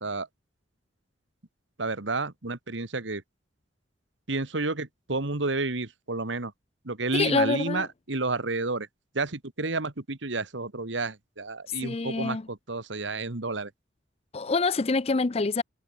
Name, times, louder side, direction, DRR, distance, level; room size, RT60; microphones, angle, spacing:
voice 1, 1.8-3.2 4.3-6.5 6.8-8.9 9.1-13.7, right 3 dB, 75° right, 1.8 m, -31 dB
voice 2, 7.1-7.9 11.8-12.5 14.3-15.6, left 3 dB, 30° left, 0.5 m, -26 dB
head